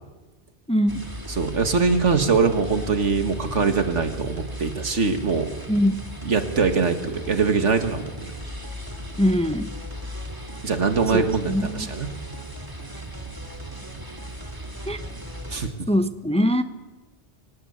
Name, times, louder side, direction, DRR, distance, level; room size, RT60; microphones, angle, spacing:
voice 1, 0.7-1.0 5.7-5.9 9.2-9.7 11.1-11.9 14.9-15.0 15.9-16.6, equal, 5° left, 10 dB, 0.8 m, -22 dB
sound 1, 0.9-15.7, equal, 20° right, 2.3 m, -36 dB
voice 2, 1.3-5.5 6.2-8.3 10.6-12.1 15.5-15.7, right 5 dB, 85° right, 8 dB, 2.1 m, -22 dB
25.0 x 18.5 x 8.2 m, 1.2 s
omnidirectional pair, 1.2 m